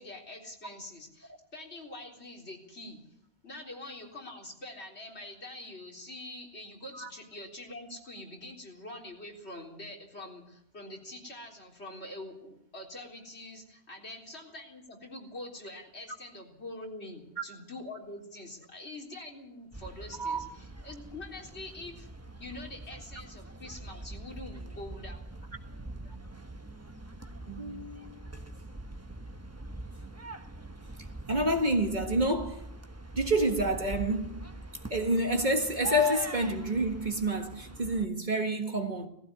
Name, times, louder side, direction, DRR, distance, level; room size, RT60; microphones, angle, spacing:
voice 1, 0.0-3.0 3.4-22.1 22.4-25.2, left 2 dB, 85° left, 4.1 m, -45 dB
sound 1, 19.7-38.1, right 1 dB, 15° right, 1.1 m, -43 dB
voice 2, 27.5-28.2 31.3-32.6 33.1-34.5 34.9-39.1, right 1 dB, 45° right, 1.8 m, -28 dB
18.0 x 15.5 x 9.4 m
omnidirectional pair, 1.1 m